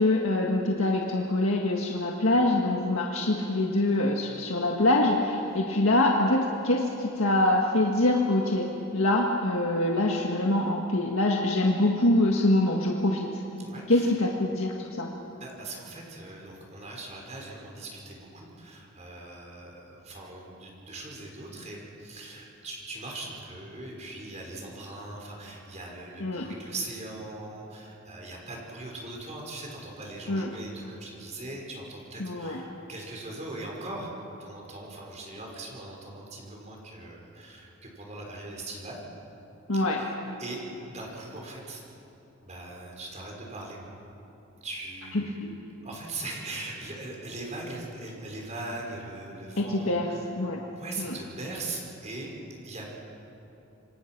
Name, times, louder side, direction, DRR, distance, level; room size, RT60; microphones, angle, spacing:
voice 1, 0.0-8.7 8.9-13.4 13.9-15.1 26.2-26.5 30.3-30.5 32.2-32.6 39.7-40.0 45.1-45.5 49.6-50.1 50.4-50.6 51.0-51.1, left 1 dB, 80° left, 0 dB, 1.8 m, -24 dB
voice 2, 13.6-14.1 15.4-34.1 34.4-39.0 39.7-40.1 40.4-40.6 40.9-41.8 42.4-43.8 44.6-45.4 45.8-50.2 50.7-52.3 52.6-53.0, right 2 dB, 35° right, -1 dB, 5.5 m, -40 dB
28.0 x 24.5 x 6.2 m, 3.0 s
head